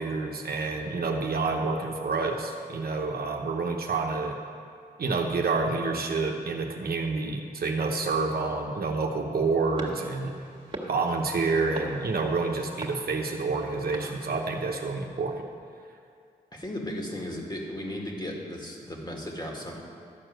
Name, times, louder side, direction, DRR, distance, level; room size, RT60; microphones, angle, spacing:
voice 1, 0.0-4.4 5.0-10.4 10.9-15.5, right 3 dB, 65° right, 2 dB, 1.0 m, -28 dB
sound 1, 9.8-14.9, right 1 dB, 30° right, 1.9 m, -42 dB
voice 2, 16.5-19.7, left 1 dB, 25° left, -1 dB, 2.3 m, -35 dB
12.5 x 4.7 x 7.7 m, 2.3 s
cardioid pair, 55°, 17 cm